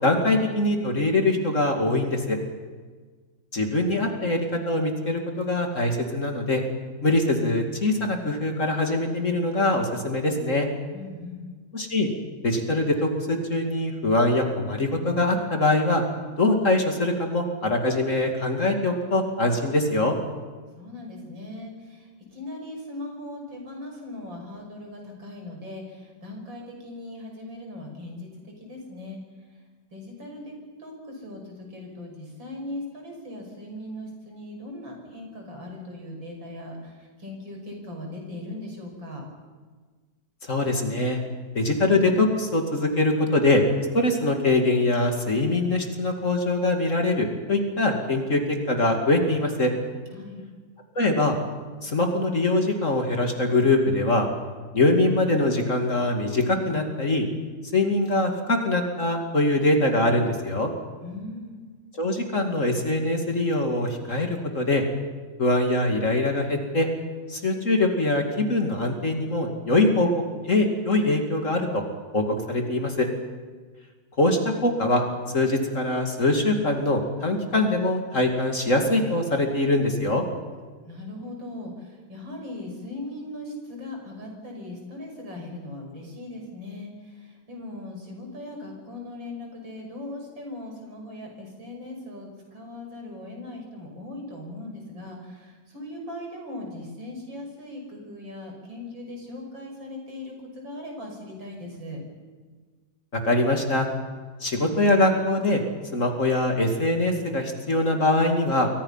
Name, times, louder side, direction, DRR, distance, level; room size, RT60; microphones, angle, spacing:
voice 1, 0.0-2.4 3.5-6.6 7.0-10.7 11.7-12.1 12.4-16.0 16.4-20.1 40.4-41.2 41.5-43.6 43.9-49.7 51.0-51.4 51.8-54.3 54.7-57.3 57.7-60.7 62.0-64.8 65.4-66.9 67.3-70.1 70.4-71.8 72.1-73.1 74.2-75.0 75.3-80.2 103.1-103.9 104.4-105.6 105.9-108.7, left 2 dB, 40° left, 3 dB, 2.8 m, -23 dB
voice 2, 10.9-11.5 20.8-29.2 29.5-29.6 29.9-39.2 50.1-50.4 61.0-61.6 80.9-102.0, left 1 dB, 70° right, 1 dB, 6.7 m, -39 dB
28.5 x 23.5 x 5.8 m, 1.4 s
omnidirectional pair, 2.1 m